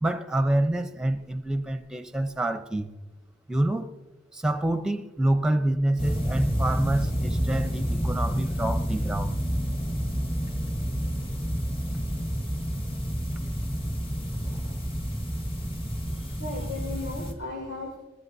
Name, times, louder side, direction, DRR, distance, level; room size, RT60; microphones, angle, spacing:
voice 1, 0.0-2.9 3.5-3.9 4.3-9.4, right 1 dB, 5° right, 0.7 m, -27 dB
sound 1, 6.0-17.3, equal, 25° left, 1.4 m, -29 dB
voice 2, 15.9-18.0, left 2 dB, 85° left, 5.0 m, -36 dB
20.0 x 14.5 x 2.8 m
head